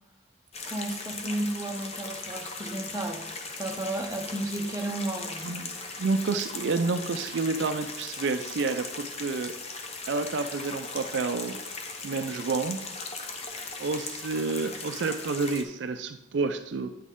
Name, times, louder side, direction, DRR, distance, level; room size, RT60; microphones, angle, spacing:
sound 1, 0.5-15.6, left 3 dB, 30° left, 0.7 m, -38 dB
voice 1, 0.7-3.3 3.5-5.5 5.8-5.9, right 1 dB, 20° right, 1 dB, 0.7 m, -33 dB
voice 2, 5.4-9.5 10.1-11.6 12.0-12.8 13.4-16.9, right 4 dB, 65° right, 8 dB, 0.4 m, -29 dB
9.2 x 6.1 x 3.7 m, 0.88 s
head